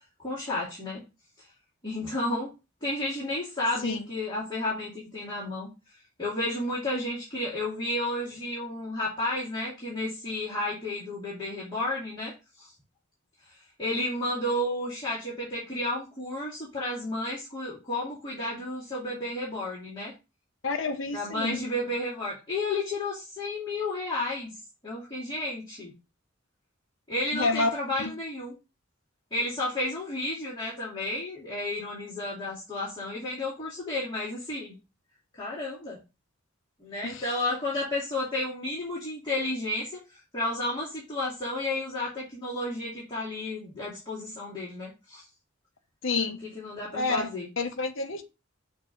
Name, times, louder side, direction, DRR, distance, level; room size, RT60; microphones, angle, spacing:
voice 1, 0.2-1.0 1.8-2.5 2.8-5.7 6.2-12.7 13.8-20.1 21.1-24.5 24.8-25.9 27.1-28.5 29.3-34.8 35.4-36.0 36.8-40.0 40.3-45.3 46.5-47.5, left 1 dB, 25° left, 2.2 m, -32 dB
voice 2, 20.6-21.6 27.3-27.7 28.0-28.1 37.0-37.2 46.0-46.4 46.9-47.3 47.6-48.2, left 3 dB, 70° left, 0.9 m, -28 dB
6.6 x 2.9 x 5.1 m
head